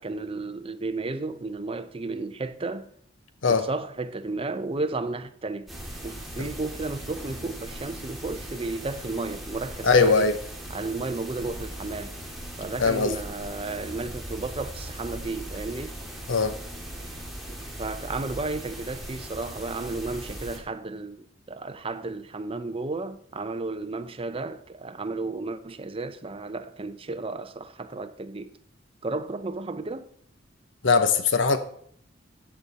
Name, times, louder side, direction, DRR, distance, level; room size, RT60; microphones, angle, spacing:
voice 1, 0.0-2.9 3.5-5.7 6.0-10.3 10.7-12.1 12.6-16.0 17.8-28.6 29.0-30.1, right 3 dB, 30° right, 0.7 m, -33 dB
sound 1, 5.7-20.6, right 1 dB, ahead, 2.5 m, -39 dB
voice 2, 9.8-10.3 12.8-13.1 16.3-16.5 30.8-31.6, left 4 dB, 80° left, 1.0 m, -20 dB
13.5 x 8.3 x 4.2 m
head